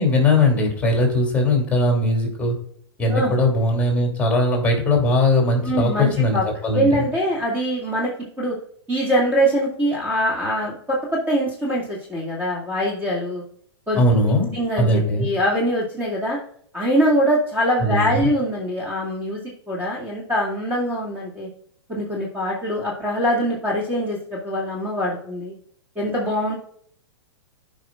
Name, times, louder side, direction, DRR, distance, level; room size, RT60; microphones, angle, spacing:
voice 1, 0.0-2.6 3.0-7.0 13.9-15.3 17.8-18.3, left 2 dB, 10° left, 1 dB, 2.9 m, -20 dB
voice 2, 5.6-6.4 6.7-8.1 8.4-8.6 8.9-13.4 13.9-14.0 14.5-16.4 16.7-19.4 19.7-21.5 21.9-25.5 26.0-26.5, equal, 10° right, -5 dB, 2.3 m, -23 dB
14.0 x 5.3 x 2.5 m, 0.64 s
hypercardioid pair, 115°, 14 cm